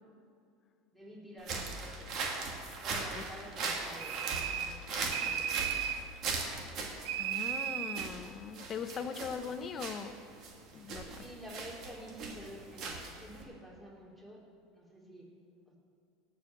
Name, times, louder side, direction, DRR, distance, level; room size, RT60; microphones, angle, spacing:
voice 1, 0.9-2.2 2.8-5.9 11.2-14.4 14.7-15.3 15.7-15.8, equal, 10° right, -3 dB, 3.4 m, -50 dB
sound 1, 1.4-13.4, right 3 dB, 50° right, 2.5 m, -39 dB
sound 2, 4.0-4.8 5.1-6.1 7.1-8.1, right 9 dB, 75° right, 0.7 m, -35 dB
voice 2, 7.2-10.2 10.7-11.2, left 6 dB, 35° left, 9 dB, 1.0 m, -40 dB
17.5 x 6.5 x 7.2 m, 2.4 s
supercardioid pair, 105°, 0 cm